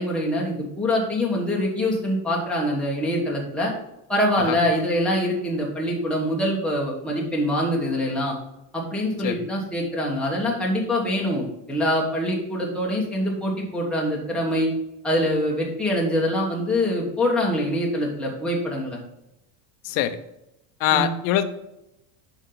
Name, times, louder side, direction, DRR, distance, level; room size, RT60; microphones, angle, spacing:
voice 1, 0.0-3.7 4.1-8.3 8.7-14.7 15.0-19.0 20.9-21.1, left 1 dB, ahead, -4 dB, 1.2 m, -24 dB
voice 2, 19.8-20.2 20.8-21.4, left 11 dB, 40° left, 9 dB, 0.6 m, -22 dB
7.2 x 5.6 x 3.9 m, 0.87 s
cardioid pair, 175°, 50 cm